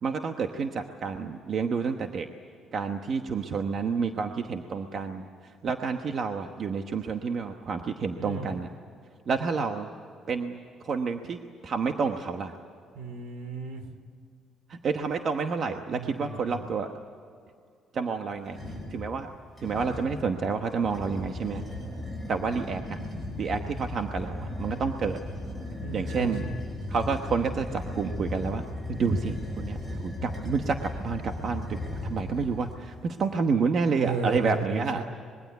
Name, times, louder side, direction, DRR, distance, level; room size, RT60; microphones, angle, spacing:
voice 1, 0.0-2.3 2.7-8.7 9.3-9.9 10.3-10.6 10.8-12.5 14.7-16.9 17.9-18.6 18.9-19.3 19.6-21.6 22.3-23.0 23.4-25.2 25.9-26.4 26.9-35.0, right 5 dB, 40° right, 5 dB, 1.1 m, -29 dB
voice 2, 8.2-8.5 12.9-13.9 15.9-16.6 25.8-26.6 34.0-35.0, right 3 dB, 70° right, 9 dB, 3.0 m, -34 dB
sound 1, 18.4-19.0 19.6-20.2 20.8-32.8, left 1 dB, 5° right, 6.5 m, -36 dB
25.5 x 22.0 x 8.2 m, 2.3 s
cardioid pair, 175°, 0 cm